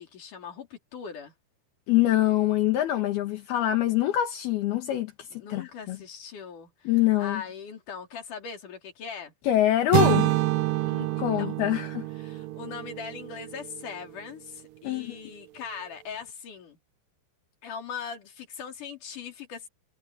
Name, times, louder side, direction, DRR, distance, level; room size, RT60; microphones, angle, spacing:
voice 1, 0.0-1.3 5.3-6.9 7.2-9.3 10.8-11.8 12.2-16.8 17.6-19.7, left 6 dB, 50° left, 4.7 m, -40 dB
voice 2, 1.9-6.0 6.9-7.4 9.4-10.4 11.2-12.0 14.8-15.2, left 14 dB, 70° left, 3.6 m, -25 dB
sound 1, 9.9-13.9, right 17 dB, 85° right, 2.0 m, -27 dB
omnidirectional pair, 4.8 m